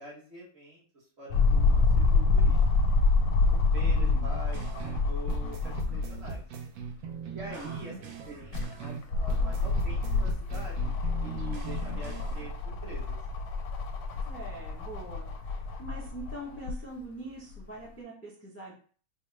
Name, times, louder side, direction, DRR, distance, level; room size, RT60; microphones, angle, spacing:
voice 1, 0.0-2.6 3.4-6.4 7.3-13.2, right 1 dB, 45° right, -4 dB, 1.2 m, -45 dB
sound 1, 1.3-6.4 6.8-6.9 8.2-16.8 17.6-17.7, left 3 dB, 80° left, 1.1 m, -27 dB
voice 2, 3.8-4.3 7.5-7.8 14.3-18.7, right 1 dB, 15° left, -4 dB, 0.6 m, -43 dB
sound 2, 4.5-5.0 5.3-9.0 9.3-12.5, right 6 dB, 70° right, 1.0 m, -40 dB
4.3 x 2.1 x 3.2 m, 0.42 s
omnidirectional pair, 1.6 m